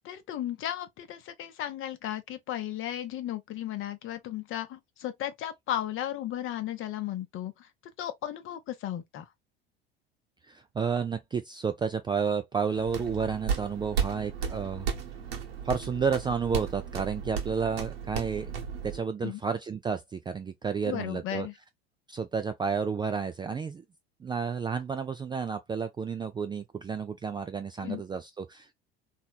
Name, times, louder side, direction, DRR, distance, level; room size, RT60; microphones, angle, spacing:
voice 1, 0.0-7.7 8.0-9.3 19.2-19.4 20.9-21.5 27.8-28.0, left 12 dB, 40° left, 0.8 m, -35 dB
voice 2, 10.5-14.9 15.6-18.5 18.8-21.5 22.1-23.8 24.2-28.8, right 6 dB, 15° right, 0.4 m, -31 dB
sound 1, 12.7-19.0, right 7 dB, 70° right, 1.1 m, -34 dB
3.1 x 2.7 x 2.3 m
hypercardioid pair, 70°, 31 cm